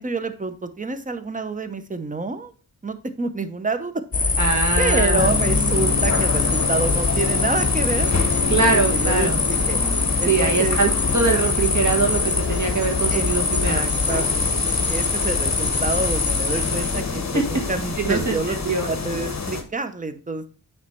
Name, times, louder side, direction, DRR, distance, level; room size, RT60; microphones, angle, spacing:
voice 1, 0.0-2.5 2.8-3.9 4.8-8.1 8.7-9.8 10.2-10.8 13.1-13.2 13.7-20.5, right 3 dB, 20° right, 9 dB, 0.7 m, -28 dB
sound 1, 4.1-17.0, left 4 dB, 25° left, 0.5 m, -23 dB
voice 2, 4.4-5.3 8.5-9.4 10.3-13.8 17.3-17.4 18.0-18.9, right 4 dB, 55° right, 2 dB, 1.6 m, -23 dB
sound 2, 5.2-19.6, left 4 dB, 50° left, 1.2 m, -27 dB
9.4 x 3.2 x 4.4 m, 0.37 s
wide cardioid pair, 105°, 35 cm